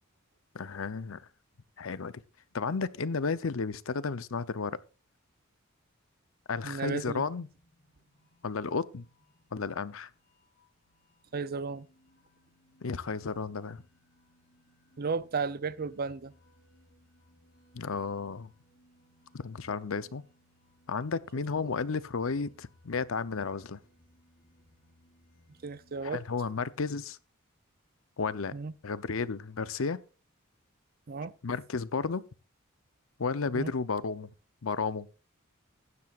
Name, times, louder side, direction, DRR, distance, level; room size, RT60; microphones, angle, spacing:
voice 1, 0.5-1.2 1.8-2.2 2.5-4.8 6.5-7.5 8.4-9.1 9.5-10.1 12.8-13.8 17.7-18.5 19.3-20.2 20.9-23.8 26.0-27.2 28.2-28.6 28.8-30.0 31.4-32.3 33.2-34.3 34.6-35.1, left 4 dB, 70° left, 0.7 m, -33 dB
voice 2, 6.6-7.3 11.3-11.9 15.0-16.3 21.6-21.7 25.6-26.2 28.5-28.7 31.1-31.3 33.5-33.7, right 4 dB, 45° right, 0.5 m, -34 dB
sound 1, 7.5-27.0, left 1 dB, 45° left, 3.5 m, -65 dB
15.5 x 10.5 x 2.4 m
head